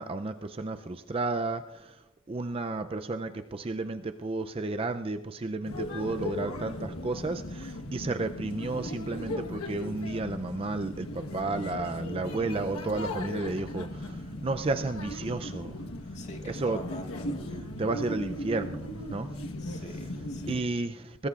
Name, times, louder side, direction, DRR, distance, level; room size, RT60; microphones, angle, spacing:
voice 1, 0.0-2.0 2.3-15.8 16.4-16.8 17.8-19.3 19.7-19.8 20.5-21.3, right 3 dB, 25° right, 8 dB, 0.4 m, -32 dB
sound 1, 5.6-20.6, left 1 dB, 90° left, 1.3 m, -37 dB
voice 2, 16.1-17.4 19.6-20.6, left 1 dB, 30° left, 1 dB, 2.1 m, -45 dB
23.5 x 19.5 x 2.4 m, 1.0 s
head